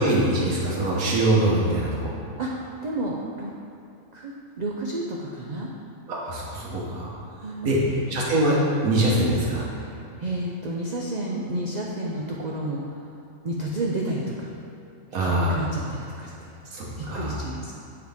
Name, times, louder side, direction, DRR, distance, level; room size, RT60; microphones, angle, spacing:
voice 1, 0.0-2.1 6.1-7.1 7.6-7.8 8.1-8.6 8.8-9.6 15.1-15.5 16.7-17.4, right 1 dB, 85° right, -4 dB, 1.6 m, -23 dB
voice 2, 2.4-3.5 4.1-5.7 7.4-7.8 9.8-13.1 13.4-14.5 15.2-16.3 17.0-17.7, right 1 dB, 55° right, -3 dB, 0.4 m, -31 dB
7.7 x 4.8 x 3.5 m, 2.7 s
omnidirectional pair, 1.4 m